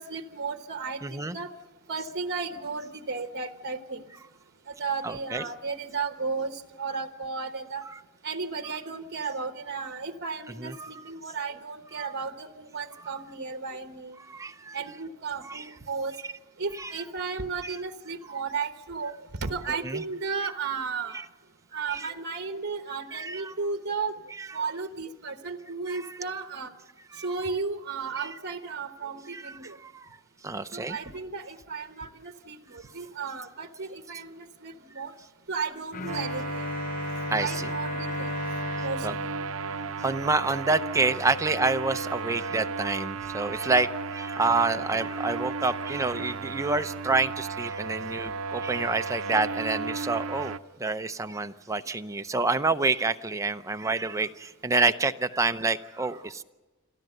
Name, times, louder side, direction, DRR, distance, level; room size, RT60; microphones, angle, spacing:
voice 1, 0.0-1.5 1.9-4.0 4.8-7.8 8.2-14.2 14.7-16.1 16.6-21.2 21.7-24.1 24.5-26.7 27.2-29.8 30.7-35.1 35.5-36.4 37.4-38.3 38.8-39.1, right 4 dB, 55° right, 8 dB, 1.1 m, -34 dB
voice 2, 1.0-1.4 5.0-5.4 10.6-10.9 14.3-14.8 15.5-15.6 16.8-16.9 17.6-17.7 19.8-20.0 21.9-22.1 23.1-23.5 25.9-26.0 27.1-27.2 28.2-28.3 29.3-30.1 30.4-31.0 37.3-37.7 39.0-39.1 40.0-56.4, right 3 dB, 15° right, 8 dB, 0.6 m, -28 dB
Bowed string instrument, 35.9-40.8, left 4 dB, 40° left, 0.7 m, -36 dB
sound 1, 36.1-50.6, right 4 dB, 70° right, 0.6 m, -34 dB
27.0 x 13.5 x 7.8 m, 1.2 s
head